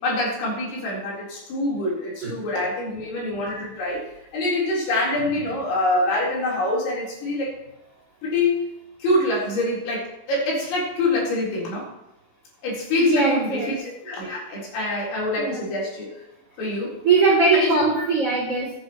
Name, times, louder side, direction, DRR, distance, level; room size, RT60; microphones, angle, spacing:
voice 1, 0.0-4.0 4.3-7.6 8.2-8.7 9.0-11.9 12.6-16.1 16.6-16.9 17.5-18.1, left 2 dB, 65° left, -6 dB, 6.4 m, -25 dB
voice 2, 13.1-13.7 15.4-15.6 17.0-18.7, right 4 dB, 35° right, -5 dB, 3.0 m, -20 dB
23.5 x 9.0 x 3.1 m, 0.93 s
omnidirectional pair, 5.9 m